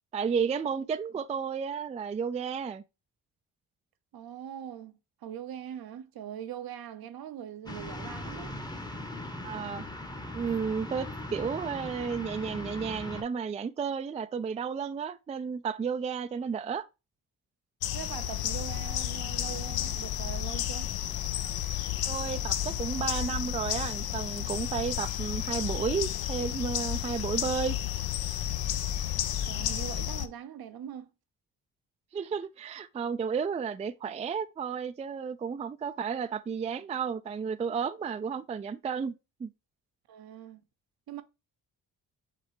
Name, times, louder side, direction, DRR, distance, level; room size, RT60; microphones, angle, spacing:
voice 1, 0.1-2.8 9.4-9.8 10.3-16.9 22.1-27.8 32.1-39.1 39.4-39.5, right 6 dB, 20° right, 0.3 m, -32 dB
voice 2, 4.1-8.6 17.9-20.9 29.5-31.1 40.1-40.6 41.1-41.2, right 10 dB, 65° right, 0.7 m, -42 dB
sound 1, 7.7-13.2, left 1 dB, 10° left, 0.8 m, -39 dB
sound 2, 17.8-30.3, left 11 dB, 65° left, 0.5 m, -32 dB
5.0 x 3.0 x 3.1 m
supercardioid pair, 55°, 40 cm